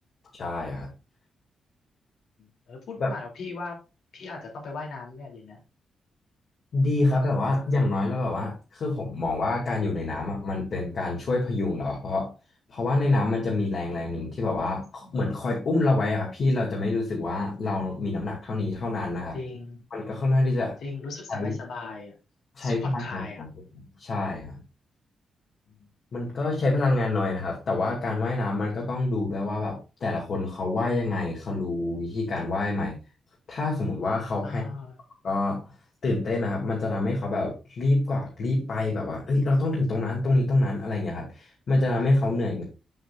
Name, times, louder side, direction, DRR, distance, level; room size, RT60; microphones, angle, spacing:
voice 1, 0.4-0.9 3.0-3.1 6.7-12.3 12.7-19.4 19.9-20.8 21.3-21.5 22.6-23.5 24.0-24.6 26.1-33.0 33.5-34.6 35.2-35.7 36.0-42.6, left 2 dB, 45° left, -2 dB, 2.2 m, -26 dB
voice 2, 2.4-3.8 4.1-5.6 19.3-19.9 20.8-22.1 22.6-23.4 25.7-25.9 34.4-35.0, left 3 dB, 70° left, 1 dB, 2.9 m, -38 dB
8.2 x 7.7 x 2.4 m, 0.29 s
wide cardioid pair, 170°, 0 cm